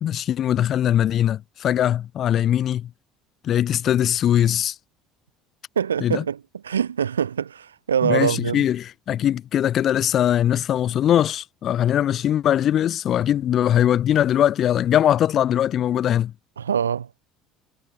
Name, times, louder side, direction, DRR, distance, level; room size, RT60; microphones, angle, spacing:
voice 1, 0.0-2.9 3.4-4.7 6.0-6.2 8.0-16.3, left 10 dB, 50° left, 1.6 m, -21 dB
voice 2, 5.8-8.6 16.6-17.1, right 8 dB, 85° right, 2.6 m, -24 dB
hypercardioid pair, 60°, 0 cm